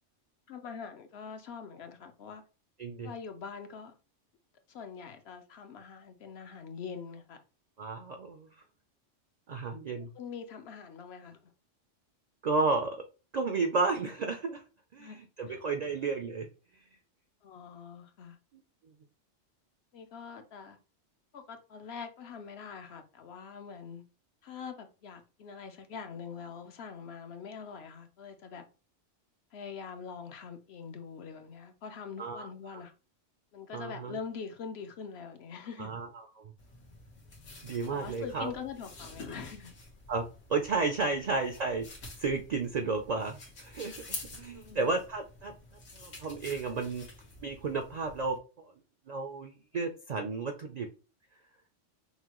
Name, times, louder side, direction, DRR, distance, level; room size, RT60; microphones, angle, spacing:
voice 1, 0.5-2.4 3.0-3.9 4.7-7.4 10.0-11.4 15.0-15.2 15.5-15.9 17.4-18.4 19.9-20.8 21.3-24.0 24.4-28.6 29.5-32.9 33.5-35.9 37.9-39.7 44.5-44.9, left 6 dB, 65° left, 7 dB, 0.8 m, -44 dB
voice 2, 2.8-3.1 7.8-8.5 9.5-10.1 12.4-13.0 13.3-14.6 14.9-16.5 32.2-32.8 33.7-34.2 35.8-36.5 37.6-38.5 40.1-41.9 42.2-45.5 45.9-47.0 47.4-48.7 49.1-50.9, right 4 dB, 60° right, 5 dB, 0.4 m, -32 dB
sound 1, 36.6-48.4, left 3 dB, 90° left, 1.6 m, -48 dB
5.6 x 2.2 x 2.9 m, 0.33 s
omnidirectional pair, 1.3 m